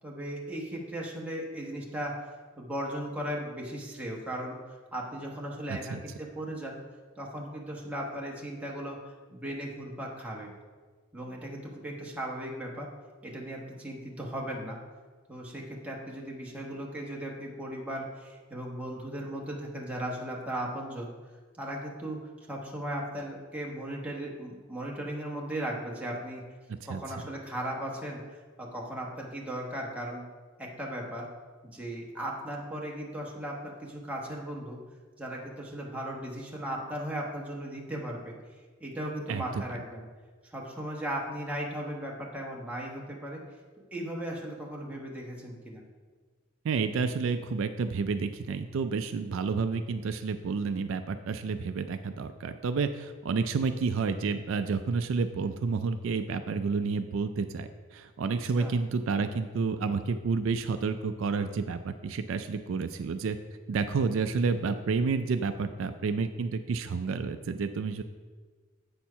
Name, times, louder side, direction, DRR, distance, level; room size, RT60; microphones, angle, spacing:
voice 1, 0.0-2.2 2.6-4.6 4.9-6.8 7.2-10.5 11.1-12.9 13.2-14.8 15.3-21.1 21.6-22.2 22.5-26.4 26.9-30.2 30.6-31.3 31.6-34.8 35.2-38.3 38.8-40.0 40.4-43.4 43.9-45.8 58.6-58.7, right 1 dB, 5° right, -2 dB, 1.1 m, -37 dB
voice 2, 5.7-6.0 26.7-27.0 39.3-39.6 46.6-63.4 63.7-68.0, right 4 dB, 65° right, 9 dB, 0.3 m, -30 dB
8.3 x 4.4 x 5.5 m, 1.5 s
head